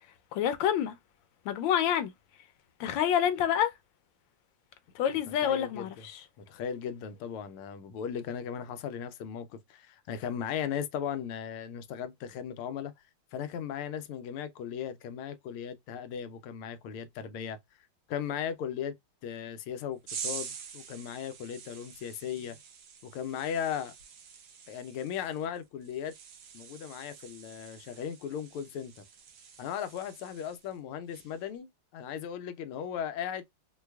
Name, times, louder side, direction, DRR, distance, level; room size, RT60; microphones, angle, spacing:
voice 1, 0.3-1.0 1.4-2.1 2.8-3.7 4.9-6.2, left 10 dB, 70° left, 1.3 m, -27 dB
voice 2, 5.4-6.1 6.4-12.9 13.3-17.6 18.1-18.9 19.2-22.6 23.0-23.9 24.7-26.1 26.5-29.0 29.6-33.4, left 8 dB, 90° left, 1.5 m, -37 dB
sound 1, 20.1-30.8 31.1-31.5, right 7 dB, 85° right, 1.9 m, -46 dB
4.7 x 2.2 x 2.2 m
omnidirectional pair, 2.3 m